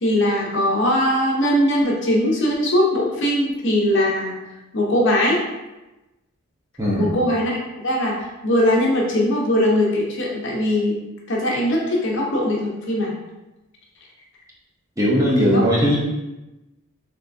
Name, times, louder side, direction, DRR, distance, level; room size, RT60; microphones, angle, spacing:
voice 1, 0.0-4.4 4.7-5.4 7.0-7.6 7.8-11.0 11.3-13.1 15.4-15.6, left 1 dB, 55° left, -3 dB, 0.8 m, -20 dB
voice 2, 6.8-7.2 15.0-16.0, equal, 15° right, -5 dB, 0.6 m, -18 dB
3.5 x 3.2 x 2.6 m, 1.0 s
head